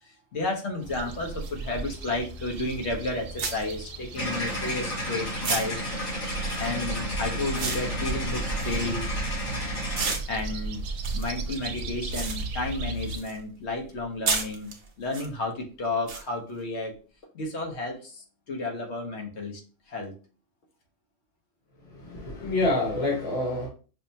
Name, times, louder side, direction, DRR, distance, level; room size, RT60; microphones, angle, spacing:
voice 1, 0.0-5.8 6.6-9.1 10.3-10.8 11.1-16.9 17.3-19.6 19.9-20.1, left 2 dB, 60° left, 1 dB, 1.1 m, -32 dB
sound 1, 0.8-13.2, right 2 dB, 80° right, 1.0 m, -35 dB
sound 2, 1.4-1.5 2.7-2.9 3.4-5.0 5.4-9.5 9.9-13.4 13.7-15.3 16.1-16.2, right 4 dB, 50° right, 0.7 m, -33 dB
sound 3, 4.2-10.1, equal, 90° left, 2.1 m, -32 dB
voice 2, 21.8-23.7, left 2 dB, 30° left, -2 dB, 1.0 m, -27 dB
5.3 x 2.0 x 2.7 m, 0.36 s
omnidirectional pair, 1.3 m